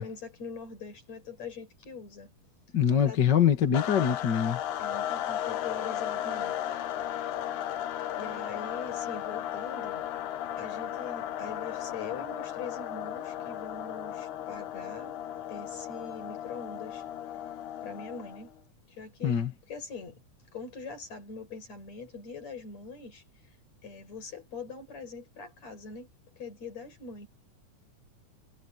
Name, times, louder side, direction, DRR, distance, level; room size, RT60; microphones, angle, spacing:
voice 1, 0.0-2.3 2.9-3.2 4.8-6.6 7.6-7.8 8.2-10.1 10.6-15.2 15.5-17.0 17.8-18.5 18.9-19.4 19.7-20.2 20.5-23.2 23.8-26.1 26.4-27.3, left 4 dB, 60° left, 7.0 m, -42 dB
voice 2, 2.7-4.6 19.2-19.5, left 8 dB, 40° left, 2.0 m, -24 dB
sound 1, 3.7-18.5, left 11 dB, 85° left, 2.5 m, -35 dB
omnidirectional pair, 3.5 m